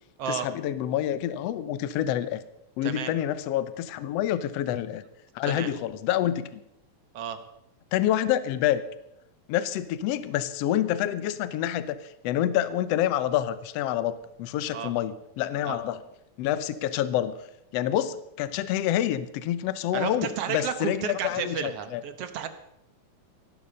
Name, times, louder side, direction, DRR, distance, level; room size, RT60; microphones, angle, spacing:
voice 1, 0.3-2.4 2.8-5.0 5.3-6.6 7.9-8.8 9.5-16.0 16.4-17.4 17.7-22.0, left 11 dB, 70° left, 14 dB, 1.7 m, -27 dB
voice 2, 19.9-22.5, right 8 dB, 65° right, 10 dB, 1.8 m, -32 dB
17.0 x 12.0 x 5.4 m, 0.81 s
omnidirectional pair, 3.4 m